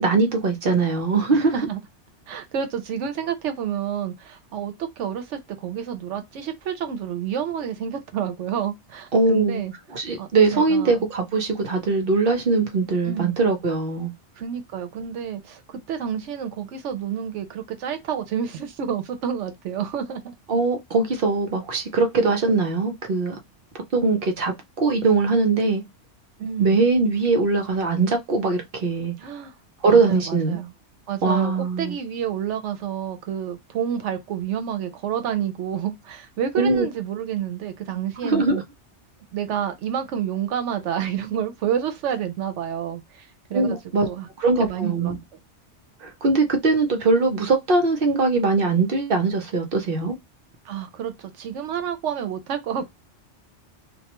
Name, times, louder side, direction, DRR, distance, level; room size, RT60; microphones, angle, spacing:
voice 1, 0.0-1.5 9.1-9.6 9.9-14.1 20.5-23.4 23.9-25.8 26.6-29.1 29.8-30.6 31.2-32.0 36.6-36.8 38.2-38.6 43.5-44.1 44.4-45.2 46.0-50.1, right 3 dB, 55° right, 0.8 m, -21 dB
voice 2, 1.3-1.8 2.3-9.7 10.2-11.1 13.0-13.4 14.4-20.3 26.4-26.8 29.2-29.6 29.8-30.7 31.1-38.6 39.3-45.2 50.6-52.9, right 8 dB, 80° right, 0.9 m, -29 dB
2.3 x 2.2 x 2.8 m
omnidirectional pair, 1.2 m